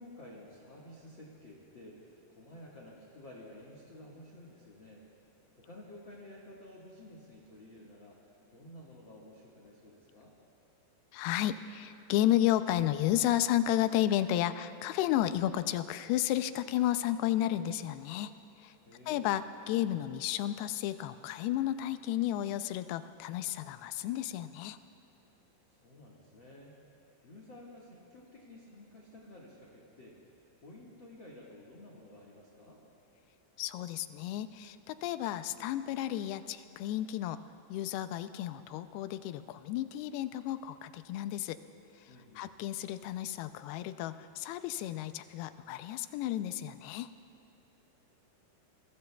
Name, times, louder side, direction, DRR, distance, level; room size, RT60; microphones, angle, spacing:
voice 1, 0.0-5.1 5.6-10.3 18.8-19.3 25.7-26.8 27.2-30.2 30.6-32.8 42.1-42.4, left 1 dB, 55° left, -3 dB, 1.4 m, -52 dB
voice 2, 11.1-18.3 18.6-18.8 19.1-24.8 33.6-37.4 37.7-41.6 42.0-47.1, left 12 dB, 85° left, 11 dB, 2.5 m, -32 dB
27.5 x 23.0 x 2.3 m, 3.0 s
omnidirectional pair, 4.6 m